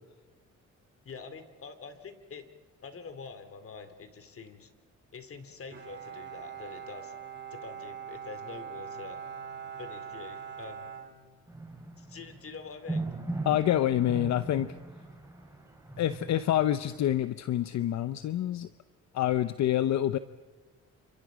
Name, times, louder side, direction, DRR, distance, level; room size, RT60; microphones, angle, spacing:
voice 1, 1.0-2.5 2.8-4.7 5.1-7.1 7.5-9.2 9.8-10.9 12.0-13.0, left 5 dB, 50° left, 9 dB, 2.6 m, -45 dB
Bowed string instrument, 5.7-11.9, right 7 dB, 40° right, 3.9 m, -43 dB
sound 1, 11.5-16.9, right 2 dB, 10° right, 4.8 m, -39 dB
voice 2, 13.4-14.7 16.0-18.7 19.1-20.2, left 12 dB, 65° left, 13 dB, 0.7 m, -27 dB
29.5 x 27.0 x 5.0 m, 1.3 s
cardioid pair, 90°, 30 cm